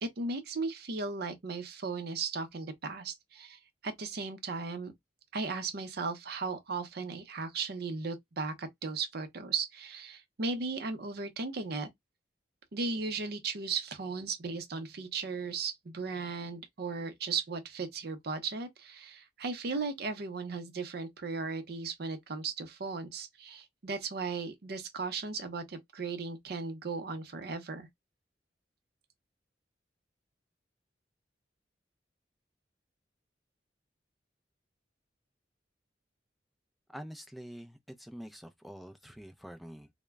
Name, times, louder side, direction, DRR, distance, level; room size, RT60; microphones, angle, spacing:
voice 1, 0.0-4.9 5.3-11.9 12.7-27.9, right 4 dB, 60° right, 0.6 m, -36 dB
voice 2, 36.9-39.9, equal, ahead, 0.3 m, -46 dB
2.1 x 2.0 x 3.4 m
head